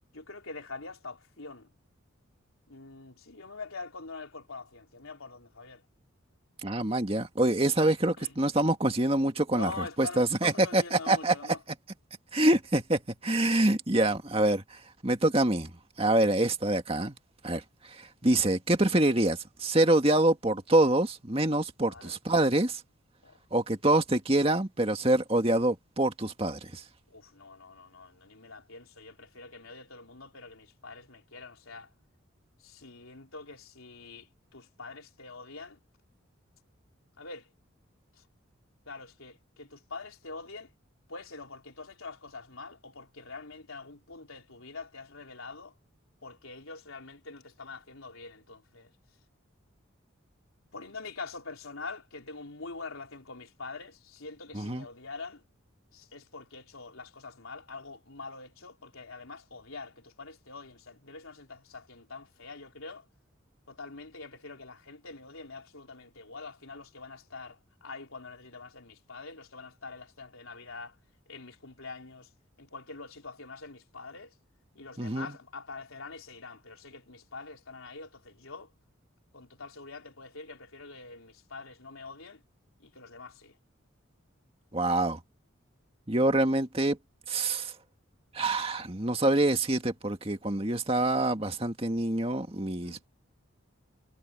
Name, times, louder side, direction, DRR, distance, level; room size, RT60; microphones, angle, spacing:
voice 1, 0.1-1.7 2.7-5.8 8.2-8.4 9.5-11.6 16.1-16.3 21.9-22.2 23.2-23.4 27.1-31.9 32.6-35.8 37.2-37.5 38.1-38.2 38.9-40.7 41.1-45.8 46.2-48.9 50.7-55.4 55.9-63.1 63.7-71.0 71.3-72.3 72.6-74.4 74.7-78.7 79.3-82.4 82.8-83.6 92.6-93.0, left 3 dB, 85° left, 4.3 m, -44 dB
voice 2, 6.6-11.3 12.3-15.7 16.0-17.2 17.4-17.6 17.9-22.8 23.5-26.8 54.5-54.8 75.0-75.3 84.7-85.2 86.1-87.0 87.3-87.7 88.3-93.1, right 1 dB, 25° right, 2.0 m, -26 dB
head